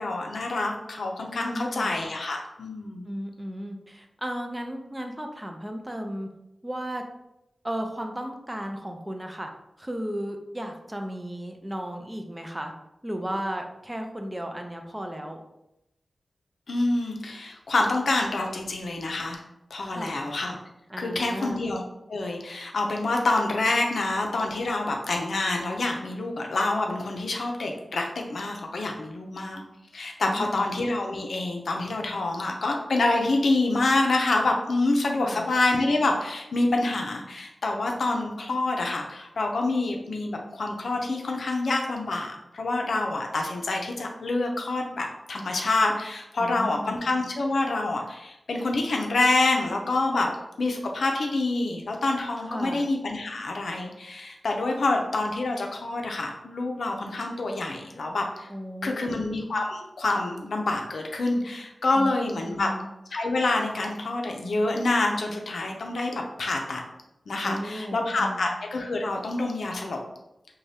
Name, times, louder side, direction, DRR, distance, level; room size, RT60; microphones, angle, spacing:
voice 1, 0.0-3.1 16.7-19.4 19.7-20.6 21.0-21.8 22.1-29.6 29.9-50.3 50.6-58.5 58.8-62.7 63.1-66.8 67.3-70.0, left 2 dB, 80° left, 1 dB, 0.4 m, -27 dB
voice 2, 1.4-1.9 3.1-6.3 6.6-7.0 7.6-9.5 9.8-12.7 13.0-15.4 19.8-20.2 20.9-21.6 30.2-30.7 35.2-35.4 46.4-47.0 52.4-52.9 58.5-59.2 62.0-62.9 67.4-68.5, equal, 15° right, 4 dB, 0.4 m, -35 dB
2.6 x 2.2 x 3.2 m, 0.86 s
wide cardioid pair, 85°, 0 cm